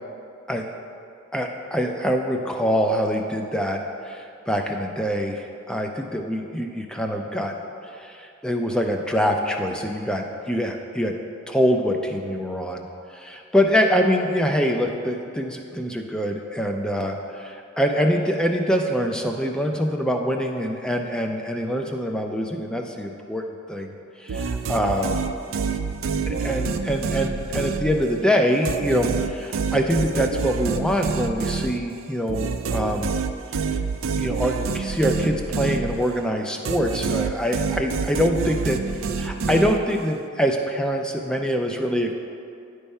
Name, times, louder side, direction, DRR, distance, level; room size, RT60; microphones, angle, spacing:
voice 1, 1.3-7.5 7.8-11.1 11.5-12.8 13.1-23.9 24.2-25.2 26.3-33.1 34.2-38.8 39.1-42.1, equal, 5° left, 3 dB, 0.4 m, -24 dB
sound 1, 24.3-28.3 28.6-36.3 36.6-40.1, right 5 dB, 80° right, 0.4 m, -27 dB
10.0 x 3.4 x 5.4 m, 2.5 s
head